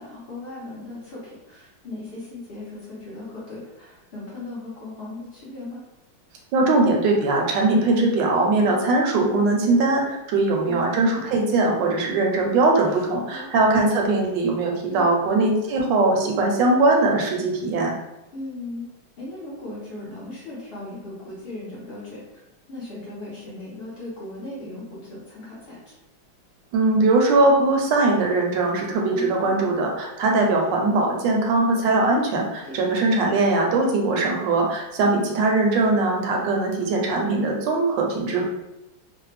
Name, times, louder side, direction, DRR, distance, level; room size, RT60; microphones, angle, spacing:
voice 1, 0.0-5.8 10.6-10.8 13.3-13.5 14.9-15.1 18.3-18.9 19.2-22.4 22.7-26.0 29.1-29.6 32.6-32.9, left 2 dB, 70° left, -8 dB, 0.5 m, -37 dB
voice 2, 6.5-17.9 26.7-38.4, right 2 dB, 75° right, 0 dB, 1.2 m, -21 dB
3.2 x 2.1 x 3.2 m, 0.94 s
omnidirectional pair, 2.1 m